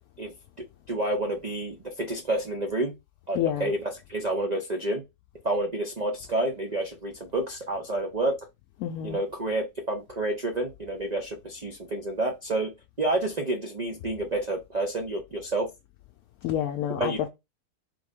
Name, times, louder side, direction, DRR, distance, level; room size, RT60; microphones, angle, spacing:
voice 1, 0.2-2.9 3.3-3.8 4.1-5.0 5.4-8.4 9.0-12.7 13.0-15.7 17.0-17.2, right 2 dB, 55° right, 0.4 m, -29 dB
voice 2, 3.3-3.7 8.8-9.2 16.4-17.3, left 10 dB, 70° left, 1.0 m, -28 dB
3.9 x 3.4 x 3.5 m
omnidirectional pair, 1.8 m